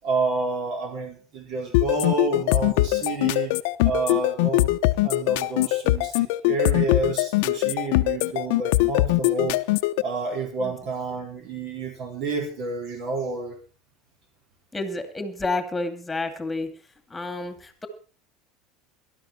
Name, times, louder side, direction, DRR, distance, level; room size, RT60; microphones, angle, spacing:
voice 1, 0.0-3.5 3.8-4.7 5.0-9.6 10.0-13.5, right 4 dB, 50° right, 4 dB, 4.6 m, -29 dB
sound 1, 1.7-10.0, left 19 dB, 75° left, 0.8 m, -21 dB
voice 2, 14.7-16.7 17.1-17.9, left 2 dB, 10° left, 8 dB, 2.4 m, -30 dB
18.5 x 12.5 x 4.3 m, 0.36 s
supercardioid pair, 140°, 0 cm